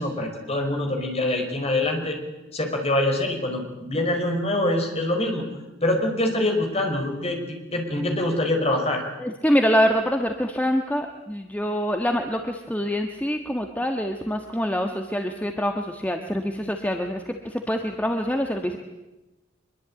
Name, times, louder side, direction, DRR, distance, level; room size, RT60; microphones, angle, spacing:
voice 1, 0.0-2.2 2.5-5.4 5.8-9.0, left 1 dB, 30° left, 3 dB, 5.2 m, -25 dB
voice 2, 9.2-18.8, equal, 10° left, 4 dB, 1.4 m, -25 dB
24.0 x 22.5 x 9.0 m, 1.1 s
head